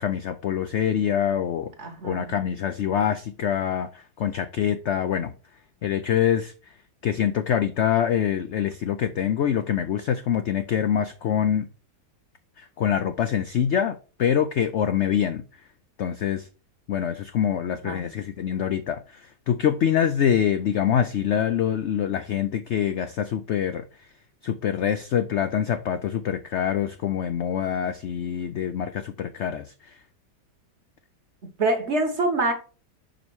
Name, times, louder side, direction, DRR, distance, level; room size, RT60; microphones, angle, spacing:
voice 1, 0.0-1.7 2.0-5.3 5.8-6.5 7.0-11.7 12.6-15.4 16.0-16.5 16.9-23.8 24.4-29.9, left 9 dB, 75° left, 0.6 m, -25 dB
voice 2, 1.8-2.3 17.8-18.1 31.6-32.5, right 2 dB, 45° right, 1.2 m, -25 dB
5.5 x 5.2 x 4.6 m
omnidirectional pair, 1.8 m